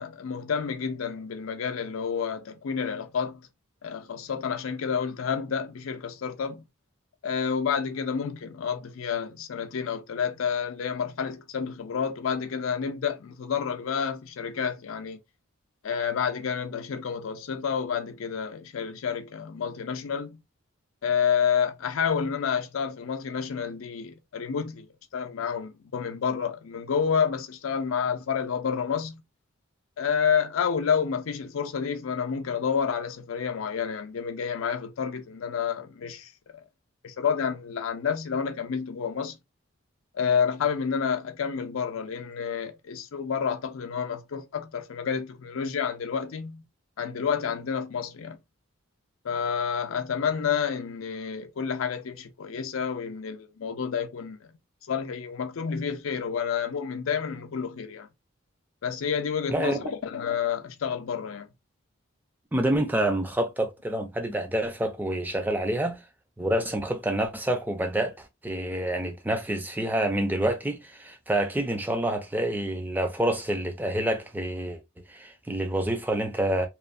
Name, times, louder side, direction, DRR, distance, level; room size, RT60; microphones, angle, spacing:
voice 1, 0.0-3.5 3.8-6.7 7.2-15.2 15.8-20.4 21.0-24.9 25.1-29.2 30.0-36.3 37.0-39.4 40.1-46.6 47.0-48.4 49.2-54.4 54.9-58.1 58.8-61.5, left 7 dB, 80° left, 0.4 m, -29 dB
voice 2, 62.5-66.0 66.4-74.8 75.1-76.7, right 1 dB, 10° right, 0.4 m, -27 dB
3.0 x 2.1 x 2.4 m
head